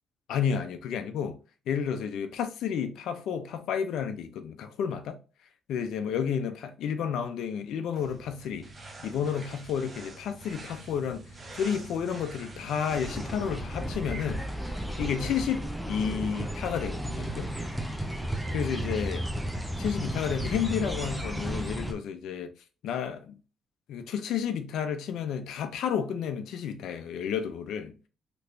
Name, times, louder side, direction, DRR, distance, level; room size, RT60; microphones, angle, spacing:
voice 1, 0.3-1.4 1.7-5.2 5.7-8.7 9.0-11.2 11.5-17.5 18.5-19.2 19.8-22.5 22.8-23.4 23.9-27.9, left 7 dB, 80° left, 0.5 m, -31 dB
sound 1, 7.9-13.5, right 2 dB, 35° right, 0.9 m, -46 dB
sound 2, 12.9-21.9, right 1 dB, 5° right, 0.6 m, -33 dB
3.3 x 3.0 x 2.5 m
cardioid pair, 90°, 0 cm